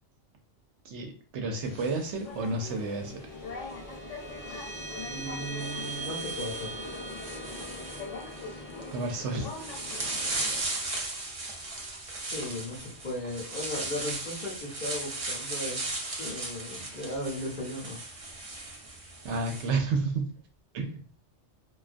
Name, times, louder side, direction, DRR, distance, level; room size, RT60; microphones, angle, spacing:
voice 1, 0.9-3.1 8.9-9.5 19.2-20.3 20.7-21.0, right 3 dB, 70° right, 4 dB, 0.8 m, -31 dB
sound 1, 1.6-3.1 4.4-4.5 5.3-19.7, right 2 dB, 55° right, 0.4 m, -37 dB
sound 2, 2.2-10.6, left 3 dB, 75° left, 1.0 m, -42 dB
sound 3, 2.8-13.5, right 2 dB, 30° right, 0.9 m, -43 dB
voice 2, 5.0-6.7 12.3-15.9 16.2-18.0, left 1 dB, 50° left, -3 dB, 0.8 m, -36 dB
2.3 x 2.2 x 2.4 m, 0.39 s
omnidirectional pair, 1.3 m